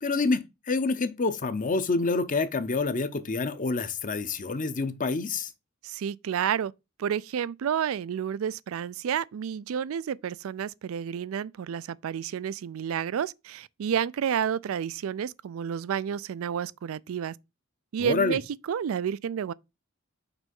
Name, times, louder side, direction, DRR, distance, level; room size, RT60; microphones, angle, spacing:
voice 1, 0.0-5.5 18.0-18.4, left 3 dB, 40° left, 0.7 m, -27 dB
voice 2, 5.8-6.7 7.0-17.3 17.9-18.4 18.7-19.5, right 8 dB, 80° right, 0.3 m, -30 dB
6.0 x 3.2 x 5.4 m
head